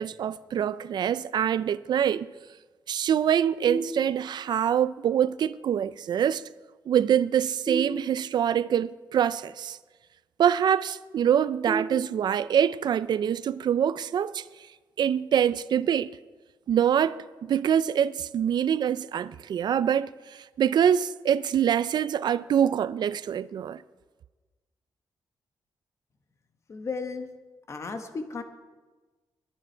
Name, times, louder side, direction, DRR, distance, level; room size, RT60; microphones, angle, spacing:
voice 1, 0.0-2.3 2.9-6.4 6.9-9.8 10.4-14.4 15.0-16.1 16.7-23.8, right 9 dB, 60° right, 0.4 m, -25 dB
sound 1, 3.7-4.6 7.6-8.7 11.7-12.7, right 3 dB, 5° right, 2.5 m, -35 dB
voice 2, 26.7-27.3 27.7-28.4, left 4 dB, 35° left, 1.2 m, -34 dB
21.5 x 9.9 x 4.5 m
wide cardioid pair, 180°, 8 cm